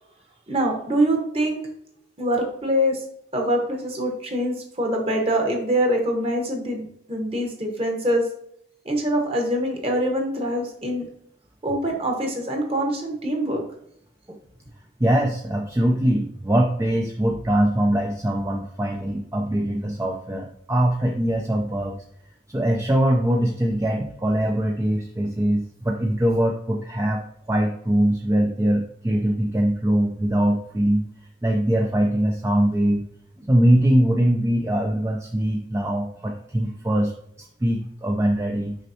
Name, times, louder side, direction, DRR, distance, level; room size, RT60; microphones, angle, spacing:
voice 1, 0.5-1.6 2.2-3.0 3.3-8.3 8.8-11.0 11.6-13.6, equal, 30° right, 2 dB, 1.2 m, -24 dB
voice 2, 15.0-22.0 22.5-27.2 27.5-31.1 31.4-33.1 33.5-37.1 37.4-38.8, right 1 dB, 15° right, 2 dB, 0.4 m, -22 dB
6.3 x 5.3 x 2.8 m, 0.70 s
head